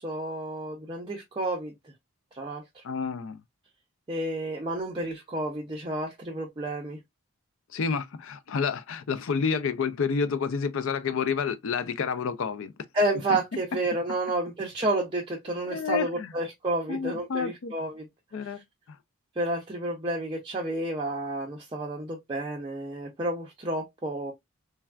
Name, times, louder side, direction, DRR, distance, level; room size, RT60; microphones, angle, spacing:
voice 1, 0.0-1.7 2.3-2.8 4.1-7.0 12.9-18.0 18.4-18.6 19.4-24.3, right 2 dB, 25° right, 0.5 m, -30 dB
voice 2, 2.8-3.4 7.7-12.7 15.6-16.3 16.9-17.7 18.3-18.6 18.9-19.0, left 5 dB, 60° left, 0.4 m, -29 dB
3.3 x 2.3 x 2.2 m
head